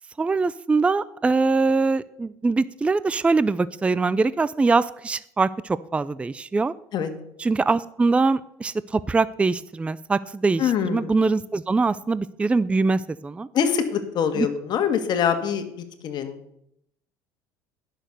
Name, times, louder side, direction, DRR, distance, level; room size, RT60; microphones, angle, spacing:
voice 1, 0.2-6.7 7.4-13.5 14.3-14.5, right 3 dB, 15° right, 17 dB, 0.4 m, -23 dB
voice 2, 10.6-11.1 13.5-15.6 16.0-16.4, left 8 dB, 50° left, 8 dB, 1.7 m, -24 dB
11.0 x 6.5 x 6.7 m, 0.77 s
supercardioid pair, 95°, 9 cm